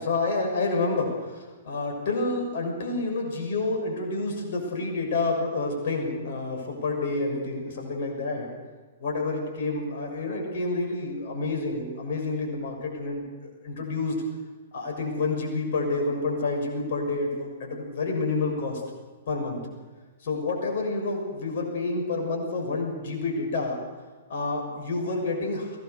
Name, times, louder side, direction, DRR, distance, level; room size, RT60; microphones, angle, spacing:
voice 1, 0.0-8.5 9.0-14.2 14.7-18.8 19.3-19.6 20.2-23.8 24.3-25.8, left 3 dB, 55° left, 2 dB, 6.4 m, -29 dB
22.5 x 18.0 x 6.8 m, 1.4 s
figure-of-eight pair, 110°, 0 cm